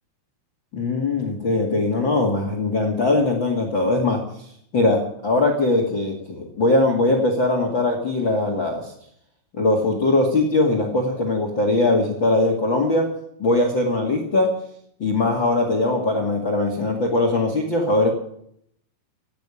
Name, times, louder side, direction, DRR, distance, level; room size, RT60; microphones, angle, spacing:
voice 1, 0.7-4.2 4.7-8.9 9.5-13.1 13.4-14.5 15.0-18.1, left 2 dB, 50° left, 3 dB, 1.4 m, -21 dB
16.5 x 8.7 x 9.9 m, 0.70 s
omnidirectional pair, 5.9 m